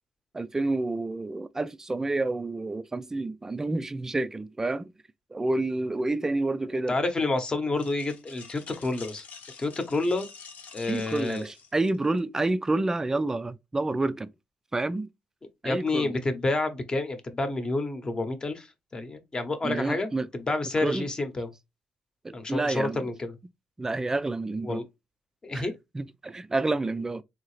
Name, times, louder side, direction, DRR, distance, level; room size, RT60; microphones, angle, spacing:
voice 1, 0.3-4.9 5.3-7.0 10.9-14.3 14.7-15.1 15.6-16.1 19.6-20.3 20.8-21.1 22.2-23.1 23.8-24.8 25.5-25.7 25.9-27.2, right 2 dB, 15° right, 0.4 m, -29 dB
voice 2, 6.9-9.2 9.6-10.3 10.7-11.4 15.6-18.7 18.9-21.5 22.3-23.3 24.6-24.9 25.4-25.7, left 2 dB, 30° left, 0.9 m, -29 dB
sound 1, 7.8-12.2, left 5 dB, 65° left, 0.8 m, -47 dB
3.8 x 2.8 x 3.1 m
cardioid pair, 90°, 3 cm